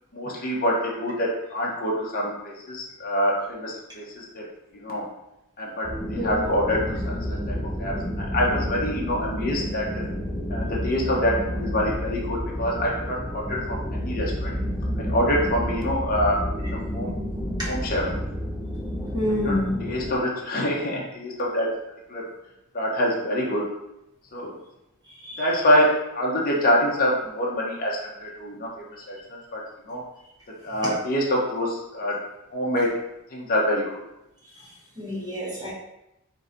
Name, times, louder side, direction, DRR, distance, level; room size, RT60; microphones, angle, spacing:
voice 1, 0.1-4.4 4.7-5.0 5.6-10.0 10.5-14.6 15.0-16.4 16.9-17.1 17.7-18.1 19.3-21.7 22.1-22.2 22.7-23.6 24.3-24.5 25.4-28.7 29.1-30.0 30.6-32.2 32.5-32.9 33.3-33.8, equal, 45° left, -3 dB, 0.8 m, -26 dB
sound 1, 5.8-20.1, equal, 5° right, 0.4 m, -30 dB
voice 2, 6.1-6.5 17.6-17.7 19.1-19.7 25.2-25.4 30.8-30.9 35.0-35.7, left 1 dB, 20° right, -6 dB, 1.2 m, -28 dB
3.8 x 2.7 x 3.9 m, 0.87 s
head